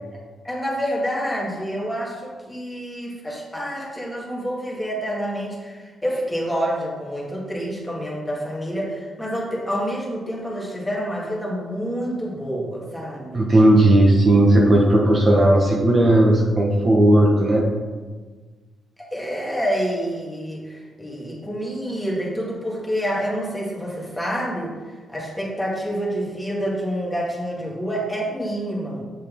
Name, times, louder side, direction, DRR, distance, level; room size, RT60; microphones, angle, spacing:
voice 1, 0.4-13.5 19.0-24.7 25.1-29.0, equal, 10° left, -4 dB, 2.2 m, -28 dB
voice 2, 13.3-17.6, right 1 dB, 35° right, -2 dB, 1.3 m, -15 dB
8.0 x 6.3 x 3.7 m, 1.4 s
cardioid pair, 95°, 0 cm